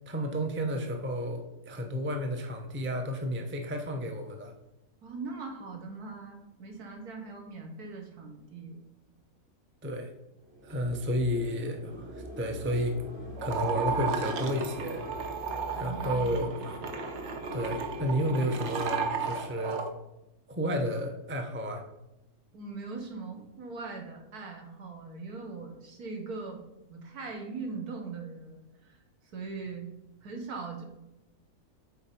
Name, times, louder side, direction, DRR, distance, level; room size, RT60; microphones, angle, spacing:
voice 1, 0.1-4.5 9.8-10.1 10.6-13.0 13.4-15.1 15.7-16.5 17.5-19.8 20.5-21.8, equal, 15° right, 4 dB, 0.5 m, -31 dB
voice 2, 5.0-8.8 15.8-16.5 22.5-26.6 26.9-29.0 29.3-29.9 30.2-30.8, right 4 dB, 85° right, 2 dB, 1.8 m, -40 dB
sound 1, 10.4-19.7, equal, 35° right, 1.8 m, -44 dB
sound 2, 13.4-19.9, right 5 dB, 55° right, 1.0 m, -34 dB
7.3 x 4.6 x 4.4 m, 0.93 s
omnidirectional pair, 1.6 m